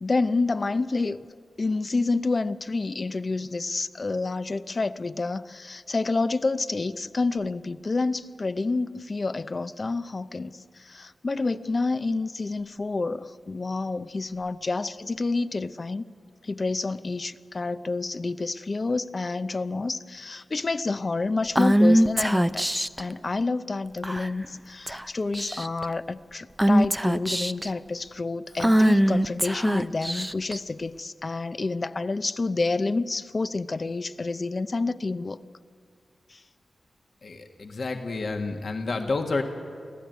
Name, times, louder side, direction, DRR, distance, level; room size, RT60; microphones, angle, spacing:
voice 1, 0.0-1.2 1.6-16.0 16.4-35.4 36.3-36.4, left 3 dB, 40° left, 14 dB, 0.7 m, -28 dB
Female speech woman speaking / Whispering, 21.6-23.0 24.0-24.5 24.9-25.0 25.3-25.8 26.6-27.7 28.6-30.6, right 1 dB, 10° right, 0.5 m, -22 dB
voice 2, 37.2-39.4, left 3 dB, 60° left, 4 dB, 1.7 m, -29 dB
24.5 x 15.5 x 9.3 m, 2.2 s
cardioid pair, 70°, 0 cm